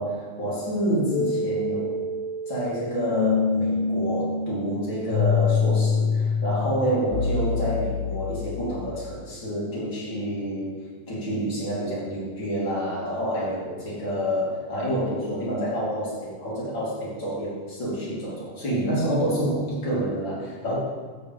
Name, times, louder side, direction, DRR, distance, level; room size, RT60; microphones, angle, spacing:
voice 1, 0.0-2.0 2.5-10.8 11.1-20.7, equal, 45° left, -7 dB, 1.6 m, -28 dB
sound 1, 1.1-9.0, left 5 dB, 90° left, 3.2 m, -26 dB
7.5 x 5.1 x 7.0 m, 1.4 s
omnidirectional pair, 5.6 m